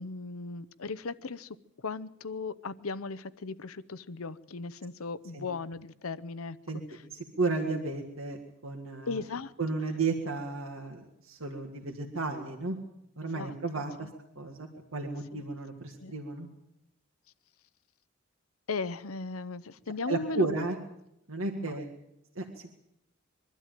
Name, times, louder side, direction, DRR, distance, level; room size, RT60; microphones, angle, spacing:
voice 1, 0.0-7.0 9.1-9.5 13.3-14.1 15.3-15.4 16.0-16.2 18.7-20.5 21.6-21.7, left 4 dB, 85° left, 17 dB, 0.8 m, -37 dB
voice 2, 7.1-9.2 9.6-12.8 13.2-14.1 14.4-16.5 20.1-20.8 21.3-21.9 22.4-22.7, right 3 dB, 75° right, 2 dB, 2.0 m, -33 dB
23.0 x 12.5 x 9.2 m, 0.82 s
head